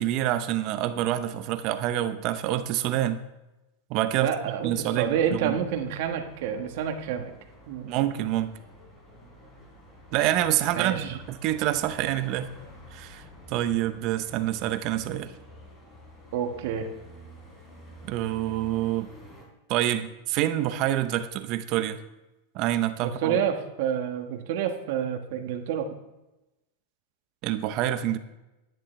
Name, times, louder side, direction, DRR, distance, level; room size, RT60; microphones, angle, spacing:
voice 1, 0.0-3.2 3.9-5.6 7.9-8.5 10.1-12.5 12.9-13.2 13.5-15.3 18.1-19.1 19.7-22.0 22.5-23.4 27.4-28.2, right 12 dB, 45° right, 10 dB, 0.7 m, -27 dB
voice 2, 4.2-7.3 7.7-7.9 10.8-11.2 16.3-16.9 23.0-25.9, right 8 dB, 60° right, 5 dB, 1.3 m, -28 dB
sound 1, 5.0-19.4, equal, 20° left, 3.6 m, -50 dB
11.0 x 10.0 x 3.2 m, 0.98 s
supercardioid pair, 145°, 0 cm